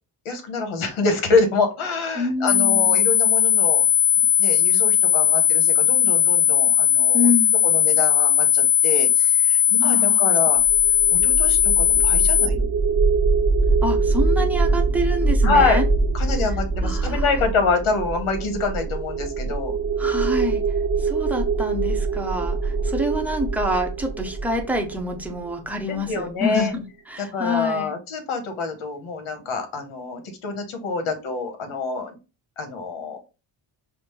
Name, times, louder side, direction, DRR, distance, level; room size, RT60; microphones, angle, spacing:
voice 1, 0.2-3.9 4.2-7.3 7.6-10.6 11.1-12.7 15.4-15.8 16.1-19.8 25.9-26.7 27.2-32.2 32.6-33.2, left 4 dB, 85° left, 6 dB, 1.2 m, -26 dB
voice 2, 2.2-3.2 7.1-7.7 9.8-10.6 13.8-15.8 16.8-17.3 20.0-20.6 21.0-27.9, left 1 dB, 5° right, 2 dB, 0.7 m, -27 dB
sound 1, 2.5-12.5, left 11 dB, 60° left, 1.0 m, -18 dB
sound 2, 10.6-25.7, right 3 dB, 45° right, 0.8 m, -23 dB
5.1 x 2.1 x 3.1 m, 0.30 s
cardioid pair, 115°, 48 cm